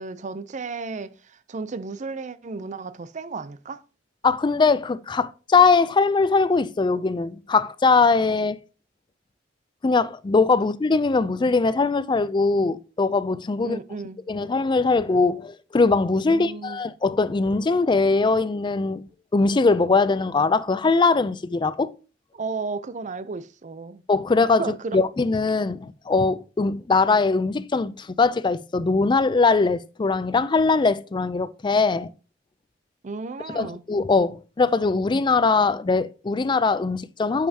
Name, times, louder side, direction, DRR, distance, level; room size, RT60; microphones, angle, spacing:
voice 1, 0.0-3.8 13.6-14.2 16.3-16.8 22.3-24.0 24.6-25.0 33.0-33.8, right 4 dB, 40° right, 0.5 m, -33 dB
voice 2, 4.2-8.6 9.8-13.8 14.3-19.0 19.3-21.9 24.1-24.6 24.9-32.1 33.5-37.5, left 4 dB, 25° left, 0.4 m, -21 dB
8.9 x 6.6 x 2.8 m
head